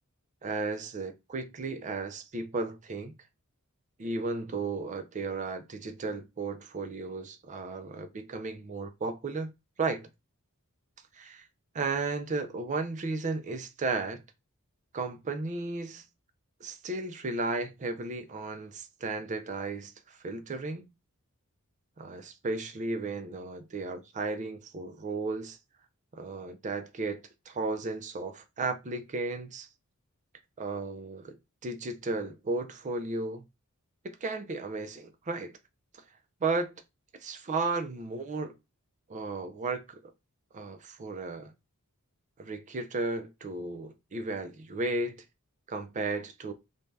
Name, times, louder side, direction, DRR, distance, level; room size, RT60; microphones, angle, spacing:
voice 1, 0.4-3.2 4.0-9.5 9.8-10.1 11.1-11.5 11.7-14.2 14.9-16.0 16.6-20.9 22.0-25.6 26.1-29.7 30.6-31.4 31.6-33.4 34.0-35.5 36.4-36.8 37.2-38.6 39.1-40.1 40.5-41.5 42.4-45.2 45.7-46.5, right 3 dB, 35° right, 0.4 m, -34 dB
2.6 x 2.2 x 3.2 m
head